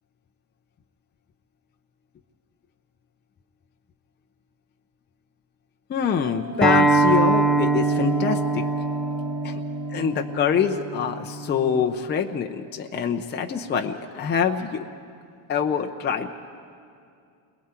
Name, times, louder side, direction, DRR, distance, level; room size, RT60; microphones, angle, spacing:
voice 1, 5.9-8.6 9.4-9.6 9.9-14.9 15.5-16.3, left 7 dB, 20° left, 3 dB, 0.7 m, -25 dB
Bell, 6.2-11.3, right 1 dB, 30° right, 1.8 m, -39 dB
Acoustic guitar, 6.6-11.8, right 2 dB, ahead, 1.0 m, -23 dB
29.5 x 21.5 x 4.4 m, 2.4 s
cardioid pair, 130°, 47 cm